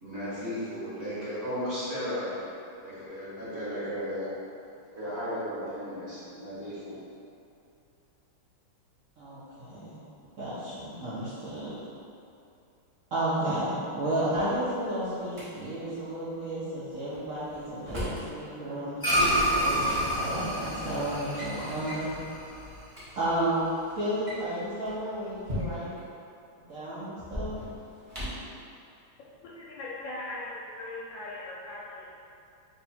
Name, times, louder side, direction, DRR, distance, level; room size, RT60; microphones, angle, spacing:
voice 1, 0.0-2.4 2.8-4.3 4.9-6.9, equal, 40° right, -13 dB, 1.2 m, -35 dB
voice 2, 9.2-10.0 10.4-11.8 13.1-19.0 19.6-22.1 23.2-23.6 24.0-25.9 26.7-27.5, right 1 dB, 90° right, -12 dB, 0.7 m, -32 dB
Drawer open or close, 14.1-15.5 17.1-18.3 19.6-19.7 20.5-20.8 21.1-21.5 21.9-22.1 22.6-22.7 22.9-23.1 24.1-26.0 27.2-28.5, left 1 dB, 60° right, 0.3 m, -38 dB
sound 1, 19.0-23.6, equal, 25° left, 0.5 m, -29 dB
voice 3, 29.4-32.1, left 2 dB, 75° left, -7 dB, 1.1 m, -39 dB
3.3 x 2.7 x 4.1 m, 2.6 s
omnidirectional pair, 2.4 m